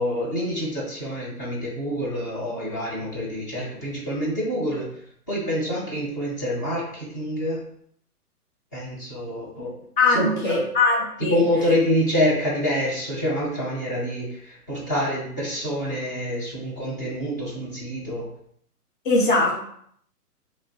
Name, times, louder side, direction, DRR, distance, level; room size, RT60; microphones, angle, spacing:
voice 1, 0.0-4.9 5.3-7.6 8.7-9.7 10.1-10.6 11.2-18.3, equal, 15° left, -7 dB, 0.5 m, -26 dB
voice 2, 10.0-11.4 19.0-19.6, left 3 dB, 35° left, -2 dB, 0.9 m, -21 dB
2.8 x 2.5 x 4.3 m, 0.66 s
figure-of-eight pair, 125°, 46 cm